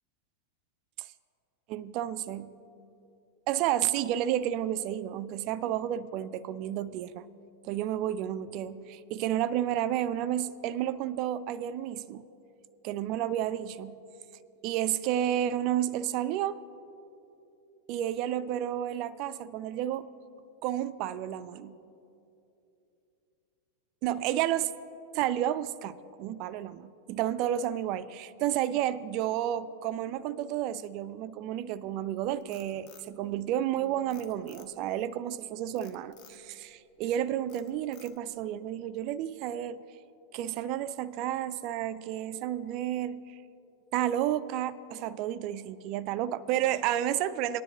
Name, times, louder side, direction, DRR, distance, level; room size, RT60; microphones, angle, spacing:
voice 1, 1.7-2.6 3.5-7.3 7.6-12.3 12.8-14.0 14.6-16.6 17.9-20.1 20.6-21.8 24.0-24.7 25.1-39.8 40.3-43.4 43.9-47.6, right 11 dB, 40° right, 16 dB, 0.3 m, -31 dB
Frog, 32.2-33.7 34.1-35.0 35.8-36.4 36.9-37.2 37.5-38.4, left 9 dB, 40° left, 0.8 m, -56 dB
19.0 x 10.0 x 2.9 m, 2.8 s
figure-of-eight pair, 90°, 0 cm